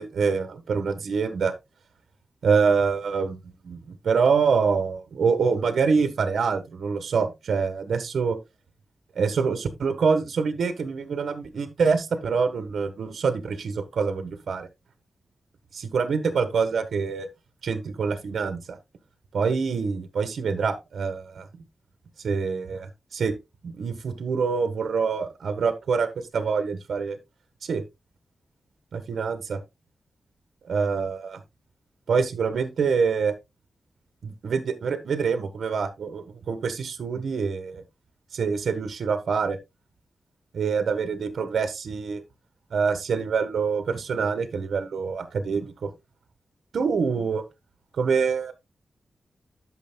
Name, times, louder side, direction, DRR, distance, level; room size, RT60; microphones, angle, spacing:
voice 1, 0.0-1.5 2.4-3.4 3.6-8.4 9.1-14.7 15.7-17.3 17.6-18.6 19.3-21.5 22.2-23.3 23.6-26.1 26.3-27.2 27.6-27.8 28.9-29.6 30.7-31.4 32.1-33.3 34.2-37.8 38.3-39.6 40.5-42.2 42.7-45.9 46.7-47.4 48.0-48.5, right 5 dB, 85° right, 1.5 m, -25 dB
12.5 x 6.9 x 2.3 m
wide cardioid pair, 115°, 0 cm